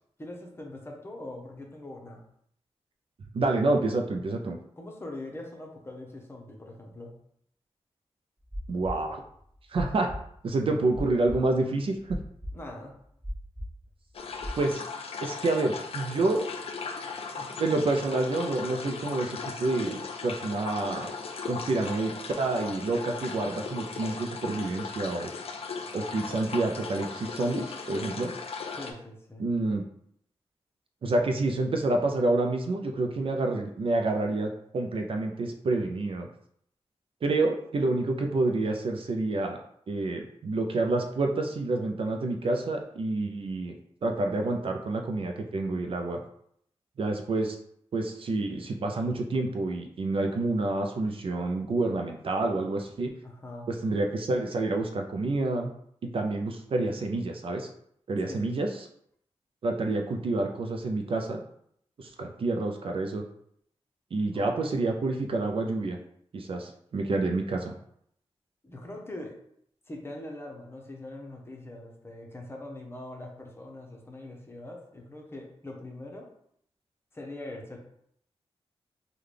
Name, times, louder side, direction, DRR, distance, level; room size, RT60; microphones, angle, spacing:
voice 1, 0.2-2.2 4.8-7.1 12.5-12.9 17.4-17.7 28.7-29.5 53.2-53.7 58.2-58.5 64.3-64.7 68.6-69.3 69.9-76.3 77.1-77.8, left 1 dB, 20° left, 0 dB, 0.8 m, -42 dB
voice 2, 3.3-4.6 8.7-9.2 9.7-10.1 10.4-12.2 14.6-14.9 15.2-16.5 17.6-21.1 21.5-25.3 25.9-28.3 29.4-29.8 31.0-36.3 37.2-39.6 39.9-43.7 44.0-46.2 47.0-47.6 47.9-53.1 53.7-55.7 56.0-57.7 58.1-58.9 59.6-61.4 62.0-63.2 64.1-66.0 66.3-67.7, right 2 dB, 55° right, 3 dB, 0.4 m, -28 dB
sound 1, 8.4-14.6, equal, 10° right, 1.2 m, -38 dB
sound 2, 14.1-28.9, left 4 dB, 65° left, 0.4 m, -37 dB
3.7 x 2.2 x 3.2 m, 0.69 s
wide cardioid pair, 85°, 11 cm